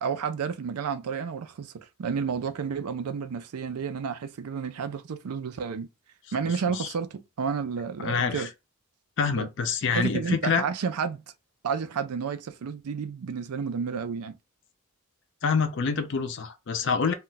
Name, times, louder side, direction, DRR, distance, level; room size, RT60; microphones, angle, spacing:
voice 1, 0.0-1.7 2.0-5.9 6.3-8.5 9.4-9.5 9.9-11.2 11.6-14.4, right 6 dB, 85° right, 0.4 m, -31 dB
voice 2, 8.0-8.5 9.2-10.7 15.4-17.1, left 5 dB, 55° left, 0.4 m, -26 dB
2.3 x 2.2 x 3.9 m
head